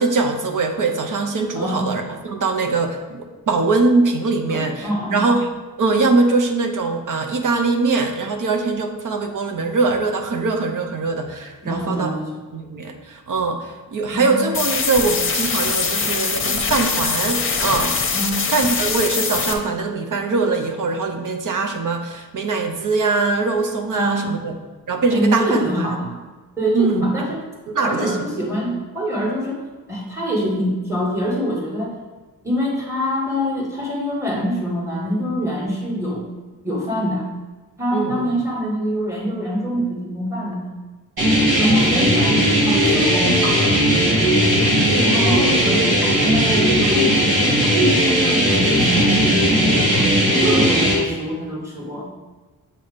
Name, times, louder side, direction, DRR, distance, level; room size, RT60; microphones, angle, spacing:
voice 1, 0.0-5.5 5.8-12.1 12.5-17.9 18.5-24.6 24.9-25.9 26.7-27.1 27.7-28.2 37.9-38.3 45.1-45.6, right 3 dB, 60° right, 4 dB, 0.7 m, -22 dB
voice 2, 1.5-1.9 4.5-5.2 11.6-12.3 14.1-14.5 18.1-18.5 23.9-24.4 25.1-26.2 26.6-27.4 27.8-29.6 29.9-31.9 32.4-36.3 36.6-37.2 37.8-40.6 41.6-43.8 44.9-49.9 50.3-52.1, equal, 10° right, -3 dB, 1.5 m, -24 dB
sound 1, 14.5-19.5, left 5 dB, 35° left, 0.7 m, -22 dB
sound 2, 41.2-50.9, equal, 80° right, 1.9 m, -17 dB
7.5 x 2.8 x 5.0 m, 1.2 s
wide cardioid pair, 135°, 36 cm